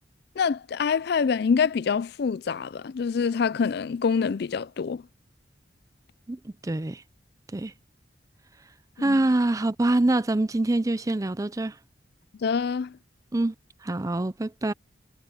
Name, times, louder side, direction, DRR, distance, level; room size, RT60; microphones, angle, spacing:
voice 1, 0.4-5.0 9.0-9.2 12.4-13.0, left 6 dB, 60° left, 0.4 m, -25 dB
voice 2, 6.3-7.0 7.5-7.7 9.0-11.8 13.3-13.5 13.8-14.7, right 2 dB, 20° right, 0.5 m, -25 dB
head